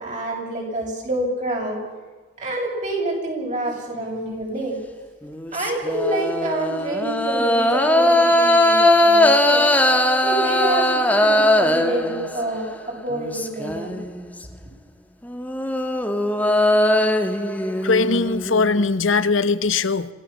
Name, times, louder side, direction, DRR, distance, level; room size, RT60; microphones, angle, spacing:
voice 1, 0.0-1.8 2.4-4.8 5.5-9.7 10.2-14.0, right 1 dB, 35° right, -1 dB, 7.7 m, -27 dB
sound 1, 5.2-12.7 13.1-14.3 15.2-19.2, left 1 dB, 10° left, 1.6 m, -20 dB
voice 2, 17.8-20.1, left 4 dB, 75° left, 14 dB, 1.1 m, -20 dB
27.0 x 16.5 x 7.4 m, 1.3 s
head